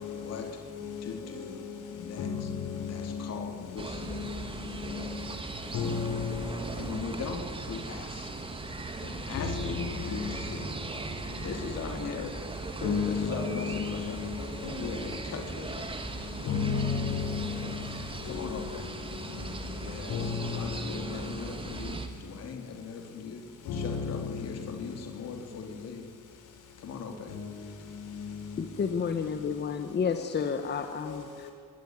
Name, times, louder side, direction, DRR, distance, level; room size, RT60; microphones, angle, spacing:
voice 1, 0.2-0.5 1.0-1.6 1.9-2.5 2.8-4.3 6.8-8.3 9.0-10.8 11.4-12.6 13.1-14.4 14.8-16.0 18.2-18.9 19.8-23.4 23.7-26.1 26.8-27.4 27.7-27.8, left 5 dB, 55° left, 3.5 m, -40 dB
sound 1, 3.8-22.1, right 3 dB, 15° right, 2.2 m, -38 dB
voice 2, 5.7-6.4 9.4-9.5 12.8-13.5 16.4-17.0 20.1-20.2 23.8-23.9, left 6 dB, 85° left, 5.8 m, -29 dB
voice 3, 28.6-31.5, left 6 dB, 35° left, 1.5 m, -31 dB
25.5 x 22.5 x 9.7 m
cardioid pair, 175°, 30 cm